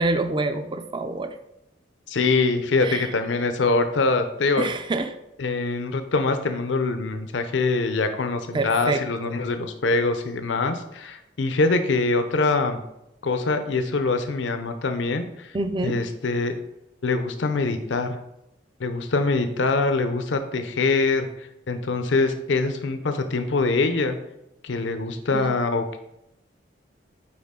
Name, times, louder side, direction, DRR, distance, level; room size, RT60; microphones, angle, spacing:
voice 1, 0.0-1.3 2.8-3.1 4.6-5.1 8.5-9.0 15.5-16.0 25.3-25.5, right 2 dB, 25° right, 8 dB, 0.4 m, -26 dB
voice 2, 2.1-4.7 5.4-12.8 13.2-15.6 15.8-16.5 17.0-18.2 18.8-24.2 24.6-26.0, left 3 dB, 80° left, 8 dB, 0.6 m, -24 dB
9.5 x 4.0 x 3.7 m, 0.85 s
head